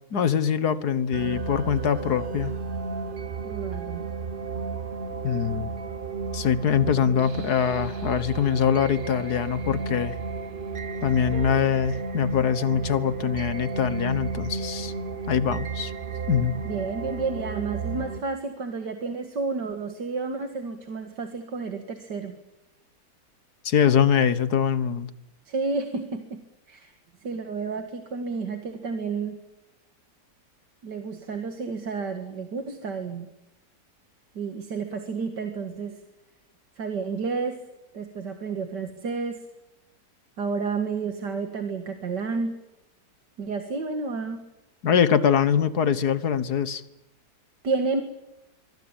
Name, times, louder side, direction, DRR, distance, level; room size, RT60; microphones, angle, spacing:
voice 1, 0.1-2.5 5.2-5.7 6.3-10.2 11.0-14.9 15.3-15.9 16.3-16.5 23.6-25.1 44.8-46.8, left 8 dB, 65° left, 14 dB, 1.8 m, -23 dB
sound 1, 1.1-18.2, right 4 dB, 35° right, 1.1 m, -33 dB
voice 2, 3.4-4.1 16.6-22.4 25.5-26.4 26.7-29.4 30.8-33.3 34.4-36.0 36.8-37.6 37.9-39.4 40.4-42.5 43.4-44.4 47.6-48.0, right 4 dB, 75° right, 6 dB, 2.5 m, -31 dB
25.5 x 23.5 x 9.0 m, 0.92 s
omnidirectional pair, 1.8 m